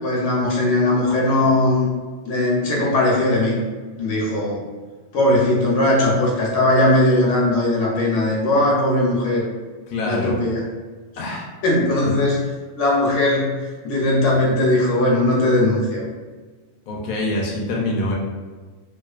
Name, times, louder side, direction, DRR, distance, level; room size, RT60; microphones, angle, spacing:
voice 1, 0.0-1.9 2.2-3.6 4.0-4.6 5.1-9.4 10.0-10.6 11.6-12.4 12.8-13.6 13.8-16.0, left 1 dB, 80° left, -4 dB, 0.9 m, -19 dB
voice 2, 9.9-10.3 11.2-11.5 16.9-18.1, left 1 dB, 60° left, -3 dB, 0.6 m, -25 dB
2.4 x 2.3 x 2.3 m, 1.4 s
omnidirectional pair, 1.2 m